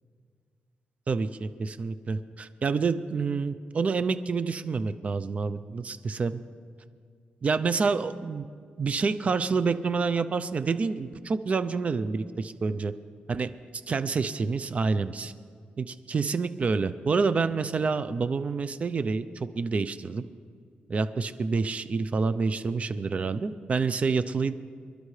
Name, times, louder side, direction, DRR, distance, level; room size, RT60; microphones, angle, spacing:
voice 1, 1.1-6.4 7.4-8.4 8.8-12.9 13.3-13.5 13.9-15.3 15.8-20.2 20.9-24.5, right 4 dB, 40° right, 12 dB, 0.6 m, -28 dB
26.5 x 11.5 x 3.3 m, 2.1 s
cardioid pair, 110°, 3 cm